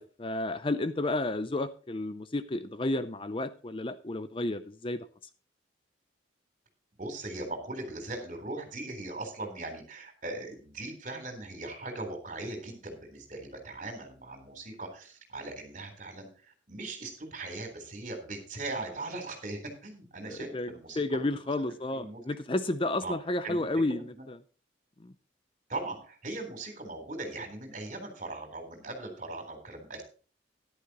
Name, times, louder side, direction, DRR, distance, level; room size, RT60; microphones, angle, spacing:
voice 1, 0.0-5.1 20.3-24.4 25.0-25.1, left 2 dB, 30° left, 12 dB, 0.6 m, -32 dB
voice 2, 7.0-21.3 21.6-22.2 23.0-23.1 23.4-24.3 25.7-30.0, right 2 dB, 45° right, 4 dB, 3.9 m, -39 dB
13.5 x 11.5 x 3.0 m, 0.37 s
head